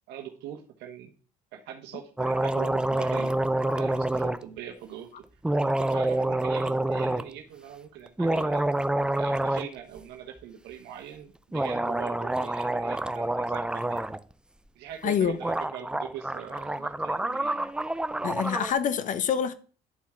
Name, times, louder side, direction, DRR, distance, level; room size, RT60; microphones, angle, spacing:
voice 1, 0.1-1.1 1.5-3.3 3.7-5.2 5.6-8.7 9.1-14.0 14.7-17.7, right 9 dB, 80° right, 1.1 m, -41 dB
sound 1, 2.2-4.4 5.4-7.3 8.1-9.7 10.0-10.1 11.5-14.2 15.1-15.2 15.4-18.7, right 1 dB, 5° right, 0.3 m, -27 dB
voice 2, 15.0-15.4 18.2-19.5, left 8 dB, 50° left, 0.7 m, -26 dB
11.0 x 4.3 x 3.6 m
cardioid pair, 110°, 17 cm